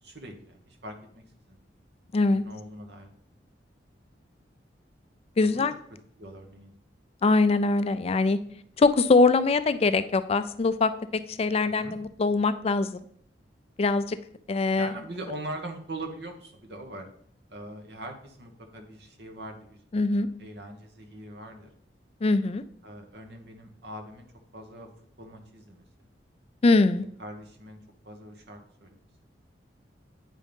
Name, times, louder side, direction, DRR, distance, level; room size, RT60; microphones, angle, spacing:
voice 1, 0.0-1.6 2.3-3.1 5.4-5.7 6.2-6.7 11.6-12.0 14.8-17.1 17.5-19.8 20.1-21.7 22.8-24.3 24.5-24.9 25.2-26.1 27.2-27.8 28.0-29.0, right 1 dB, 65° right, 4 dB, 1.3 m, -42 dB
voice 2, 2.1-2.4 5.4-5.7 7.2-8.4 8.8-10.9 11.3-13.0 13.8-14.2 14.5-14.9 19.9-20.3 22.2-22.6 26.6-27.0, left 3 dB, 35° left, 12 dB, 0.4 m, -22 dB
9.2 x 3.7 x 5.3 m, 0.64 s
head